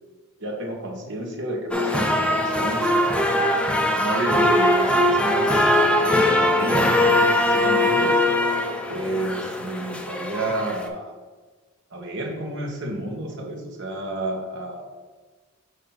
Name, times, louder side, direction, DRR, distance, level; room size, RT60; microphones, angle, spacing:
voice 1, 0.4-3.3 4.0-5.7 6.0-8.2 8.9-11.1 11.9-14.9, right 1 dB, 55° right, 1 dB, 1.1 m, -31 dB
sound 1, 1.7-10.9, left 1 dB, 5° left, 0.4 m, -21 dB
6.5 x 2.6 x 5.5 m, 1.4 s
head